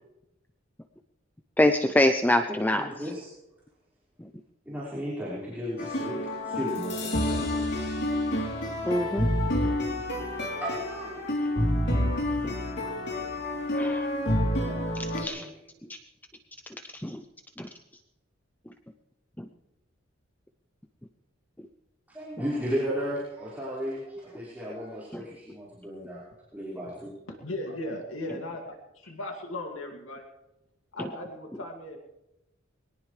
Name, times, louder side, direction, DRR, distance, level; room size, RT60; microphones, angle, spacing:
voice 1, 1.6-2.9 4.2-4.3 8.9-9.3 9.6-9.8 12.4-12.6 13.7-14.1 14.7-14.8 15.1-15.4 16.9-17.2 17.6-17.7 19.4-19.5 25.1-25.2, left 1 dB, 10° left, 7 dB, 0.6 m, -25 dB
voice 2, 2.7-3.3 4.6-7.9 10.5-11.3 14.3-15.5 22.1-26.2 26.5-27.1, equal, 10° right, -9 dB, 4.8 m, -35 dB
sound 1, 5.8-15.2, left 1 dB, 60° left, 3.3 m, -28 dB
voice 3, 27.3-28.6 29.1-30.2 30.9-32.0, left 1 dB, 90° left, 2 dB, 2.3 m, -36 dB
22.5 x 18.0 x 3.3 m, 0.93 s
head